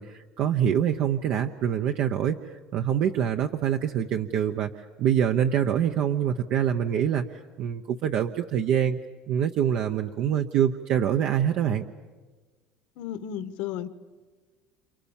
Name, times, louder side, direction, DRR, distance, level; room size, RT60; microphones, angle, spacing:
voice 1, 0.0-4.7 5.0-9.0 9.3-11.8, right 9 dB, 45° right, 6 dB, 1.0 m, -25 dB
voice 2, 13.0-13.9, left 10 dB, 60° left, 11 dB, 1.4 m, -33 dB
28.5 x 28.5 x 7.3 m, 1.3 s
cardioid pair, 160°, 3 cm